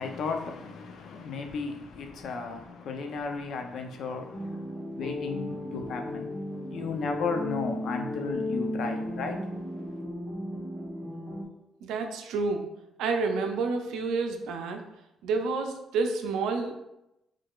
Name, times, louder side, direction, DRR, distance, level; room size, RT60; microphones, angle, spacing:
voice 1, 0.0-6.4 6.7-9.4, left 4 dB, 70° left, 0.5 m, -34 dB
sound 1, 4.3-11.4, left 1 dB, ahead, 1.0 m, -35 dB
voice 2, 11.8-12.6 13.0-14.8 15.2-16.8, right 4 dB, 90° right, 0.4 m, -29 dB
3.6 x 3.2 x 2.4 m
cardioid pair, 90°, 0 cm